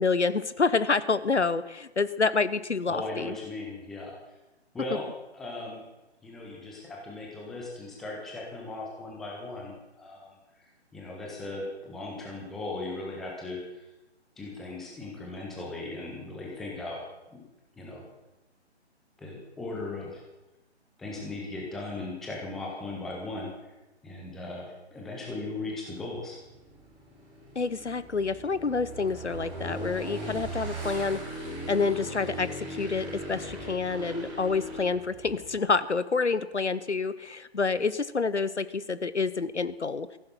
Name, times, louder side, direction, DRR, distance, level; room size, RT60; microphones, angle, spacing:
voice 1, 0.0-3.4 27.5-40.1, left 4 dB, 90° left, 16 dB, 0.9 m, -28 dB
voice 2, 2.9-4.2 4.7-5.0 5.3-5.8 6.2-10.3 10.6-13.6 14.4-17.0 17.3-17.5 17.8-18.0 19.2-20.2 21.0-23.7 24.0-26.4, left 2 dB, ahead, -2 dB, 0.5 m, -38 dB
Motorcycle / Engine, 26.0-35.6, right 1 dB, 15° right, 5.7 m, -39 dB
14.5 x 11.5 x 5.7 m, 0.99 s
figure-of-eight pair, 140°, 34 cm